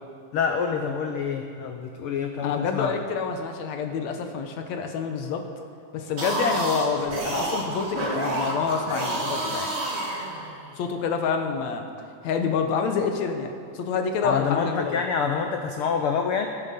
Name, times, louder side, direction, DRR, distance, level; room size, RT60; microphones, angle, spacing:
voice 1, 0.3-2.9 14.2-16.5, left 6 dB, 90° left, 5 dB, 1.2 m, -27 dB
voice 2, 2.4-5.5 5.9-9.7 10.8-11.9 12.2-15.0, left 5 dB, 70° left, 5 dB, 2.1 m, -27 dB
sound 1, 6.0-10.8, right 1 dB, 25° right, 1.6 m, -29 dB
21.5 x 9.3 x 5.6 m, 2.3 s
omnidirectional pair, 3.5 m